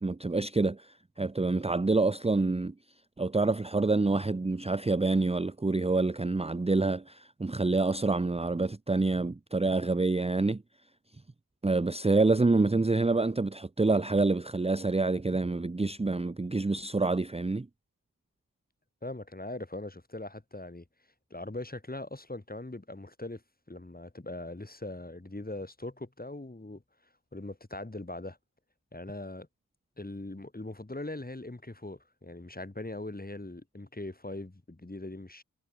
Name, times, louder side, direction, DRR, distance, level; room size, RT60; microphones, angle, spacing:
voice 1, 0.0-2.7 3.2-10.6 11.6-17.7, right 3 dB, 20° right, 0.7 m, -27 dB
voice 2, 19.0-20.8 21.3-23.4 23.7-26.8 27.3-28.4 28.9-29.5 30.0-35.4, left 2 dB, 25° left, 7.4 m, -40 dB
wide cardioid pair, 85°, 34 cm